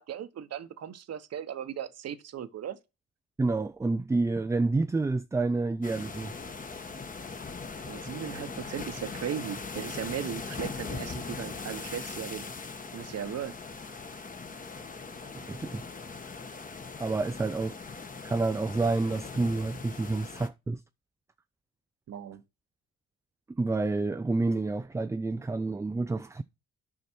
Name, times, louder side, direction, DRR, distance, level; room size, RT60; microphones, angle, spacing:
voice 1, 0.0-2.8 7.8-12.5 12.9-13.6 22.1-22.4, right 9 dB, 55° right, 1.0 m, -37 dB
voice 2, 3.4-6.3 15.3-15.8 17.0-17.8 18.2-20.8 23.6-26.4, right 3 dB, 10° right, 0.3 m, -29 dB
sound 1, 5.8-20.5, left 4 dB, 25° left, 1.2 m, -40 dB
9.8 x 5.7 x 4.4 m
cardioid pair, 90°, 30 cm